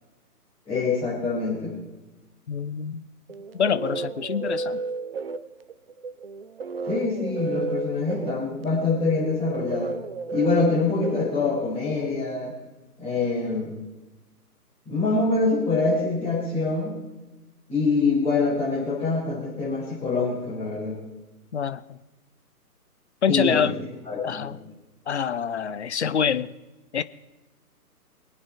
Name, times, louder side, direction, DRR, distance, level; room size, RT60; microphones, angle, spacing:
voice 1, 0.7-1.7 6.9-9.9 10.3-12.5 13.0-13.7 14.9-17.0 17.7-21.0 23.3-23.7 24.0-24.6, left 3 dB, 10° left, 4.7 m, -25 dB
voice 2, 2.5-3.0 3.5-4.8 21.5-22.0 23.2-23.8 24.2-24.6 25.1-26.5 26.9-27.0, left 7 dB, 45° left, 0.7 m, -26 dB
sound 1, 3.3-12.0, right 3 dB, 40° right, 0.6 m, -32 dB
24.0 x 8.7 x 4.4 m
figure-of-eight pair, 135°, 47 cm